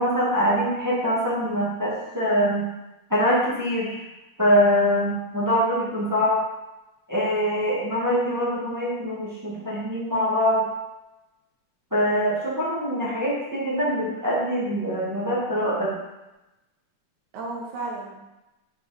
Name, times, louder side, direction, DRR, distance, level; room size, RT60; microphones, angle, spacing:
voice 1, 0.0-2.6 3.1-4.0 4.4-6.4 7.1-10.6 11.9-15.9, equal, 10° right, -8 dB, 0.8 m, -23 dB
voice 2, 8.1-8.5 17.3-18.2, right 3 dB, 85° right, -2 dB, 2.7 m, -34 dB
7.7 x 4.5 x 3.3 m, 0.98 s
omnidirectional pair, 3.3 m